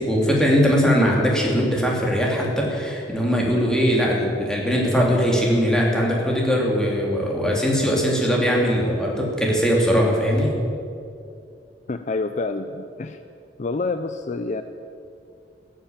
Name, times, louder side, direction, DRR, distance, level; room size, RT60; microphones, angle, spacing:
voice 1, 0.0-10.5, equal, 5° left, -2 dB, 2.8 m, -20 dB
voice 2, 11.9-13.2 13.6-14.6, left 3 dB, 45° left, 9 dB, 0.5 m, -27 dB
14.5 x 8.9 x 9.0 m, 2.5 s
head